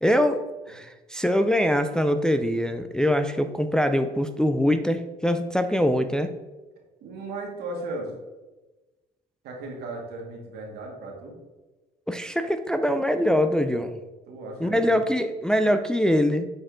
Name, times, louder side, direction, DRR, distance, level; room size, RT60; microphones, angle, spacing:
voice 1, 0.0-6.3 12.1-14.0 14.6-16.5, equal, 5° left, 8 dB, 0.4 m, -23 dB
voice 2, 7.0-8.2 9.4-11.4 14.3-15.0, right 2 dB, 75° right, 0 dB, 1.9 m, -36 dB
7.6 x 4.4 x 3.7 m, 1.1 s
cardioid pair, 110°, 17 cm